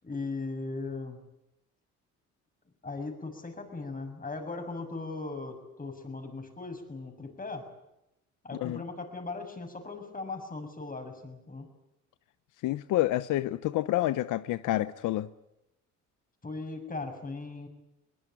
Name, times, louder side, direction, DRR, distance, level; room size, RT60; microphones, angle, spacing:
voice 1, 0.0-1.2 2.8-7.7 8.4-11.7 16.4-17.7, left 3 dB, 30° left, 6.8 m, -38 dB
voice 2, 12.6-15.3, left 15 dB, 85° left, 0.8 m, -28 dB
22.5 x 20.5 x 9.2 m
cardioid pair, 90°, 30 cm